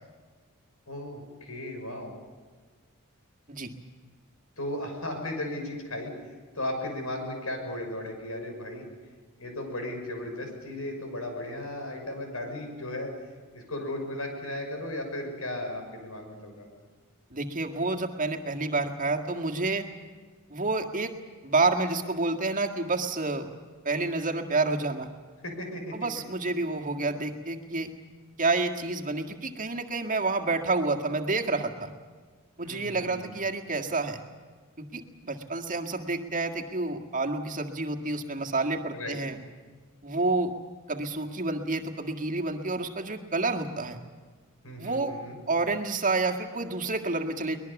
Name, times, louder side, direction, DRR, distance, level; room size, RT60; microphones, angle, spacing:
voice 1, 0.9-2.1 4.6-6.1 6.5-8.8 9.4-13.1 13.5-16.8 25.4-25.9 32.6-33.4 38.9-39.2 44.6-45.4, left 1 dB, 85° left, 3 dB, 6.3 m, -36 dB
voice 2, 17.3-19.8 20.5-21.2 21.4-23.5 23.8-25.1 25.9-27.9 28.4-31.9 32.6-34.2 34.8-39.4 40.0-40.5 40.9-44.0 44.8-45.1 45.5-47.6, right 3 dB, 40° right, 3 dB, 1.8 m, -29 dB
24.0 x 20.5 x 7.2 m, 1.5 s
head